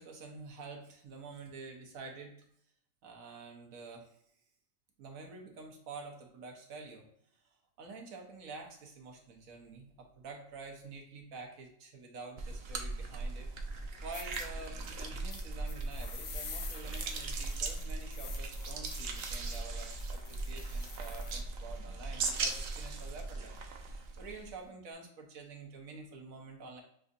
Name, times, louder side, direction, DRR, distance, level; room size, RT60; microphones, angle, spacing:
voice 1, 0.0-2.3 3.0-4.2 5.0-7.1 7.3-13.5 14.0-26.8, right 3 dB, 90° right, 2 dB, 1.3 m, -48 dB
sound 1, 12.4-24.6, right 3 dB, 60° right, 0.7 m, -38 dB
sound 2, 13.8-13.9 14.1-14.4 15.3-21.4, left 6 dB, 60° left, 0.8 m, -48 dB
6.3 x 2.6 x 2.4 m, 0.70 s
omnidirectional pair, 1.4 m